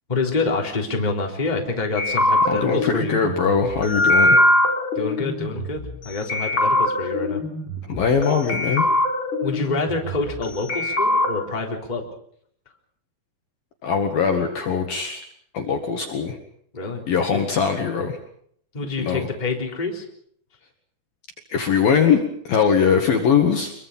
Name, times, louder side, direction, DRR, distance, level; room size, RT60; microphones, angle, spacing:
voice 1, 0.1-3.2 4.9-7.4 9.4-12.0 16.7-17.0 17.3-17.4 18.7-20.0, left 3 dB, 10° left, 1 dB, 2.9 m, -27 dB
sound 1, 2.0-6.0 6.3-8.2 8.5-10.4 10.7-11.3, left 1 dB, 25° left, 4.0 m, -21 dB
voice 2, 2.5-4.4 7.9-8.8 13.8-15.2 15.5-16.4 17.1-18.2 19.0-19.3 21.5-23.7, left 6 dB, 55° left, 3 dB, 3.1 m, -21 dB
26.0 x 23.0 x 5.7 m, 0.64 s
omnidirectional pair, 5.8 m